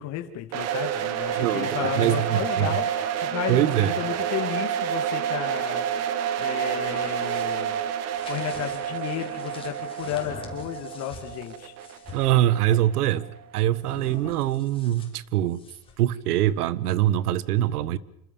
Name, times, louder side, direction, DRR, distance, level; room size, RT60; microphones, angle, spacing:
voice 1, 0.0-5.9 6.4-7.8 8.3-11.7, left 12 dB, 35° left, 2.4 m, -33 dB
sound 1, 0.5-13.4, right 9 dB, 35° right, 2.1 m, -29 dB
voice 2, 1.4-2.8 3.5-4.0 12.1-13.3 13.5-15.6 16.0-18.0, right 13 dB, 85° right, 1.5 m, -23 dB
sound 2, 6.7-12.4 13.8-16.0, left 4 dB, 10° left, 5.8 m, -45 dB
27.5 x 25.5 x 7.1 m
supercardioid pair, 150°, 45 cm